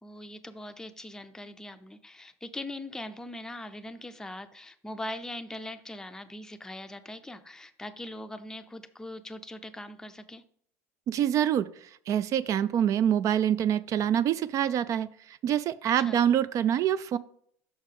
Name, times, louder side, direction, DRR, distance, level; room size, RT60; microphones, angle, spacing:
voice 1, 0.0-10.4 16.0-16.3, left 1 dB, 5° left, 9 dB, 0.5 m, -41 dB
voice 2, 11.1-11.7 12.1-17.2, right 10 dB, 40° right, 16 dB, 0.4 m, -26 dB
6.3 x 5.9 x 3.7 m, 0.63 s
supercardioid pair, 120°, 8 cm